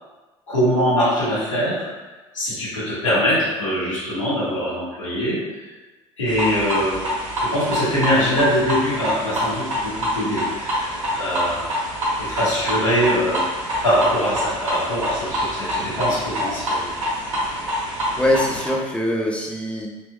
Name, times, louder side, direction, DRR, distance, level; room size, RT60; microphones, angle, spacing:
voice 1, 0.5-1.9 2.3-5.4 6.2-7.0 7.4-10.9 11.1-11.6 12.2-13.4 13.8-16.8, equal, 90° left, -10 dB, 1.0 m, -22 dB
sound 1, 6.3-18.7, equal, 85° right, 0.7 m, -26 dB
voice 2, 18.2-19.9, left 1 dB, 5° left, -1 dB, 0.6 m, -22 dB
3.4 x 2.9 x 2.2 m, 1.2 s
figure-of-eight pair, 55°, 16 cm